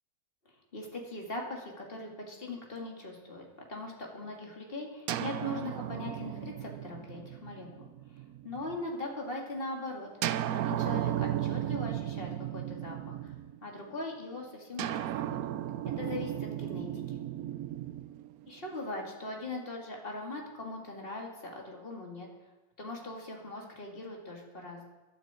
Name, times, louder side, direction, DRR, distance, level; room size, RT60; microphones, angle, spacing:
voice 1, 0.5-10.1 10.5-13.3 13.6-15.4 16.0-17.2 18.5-22.3 22.8-24.9, left 2 dB, 25° left, -1 dB, 2.8 m, -40 dB
sound 1, 5.1-8.9 10.2-13.8 14.8-18.9, right 12 dB, 90° right, 0.8 m, -35 dB
17.0 x 12.0 x 4.5 m, 1.2 s
omnidirectional pair, 2.2 m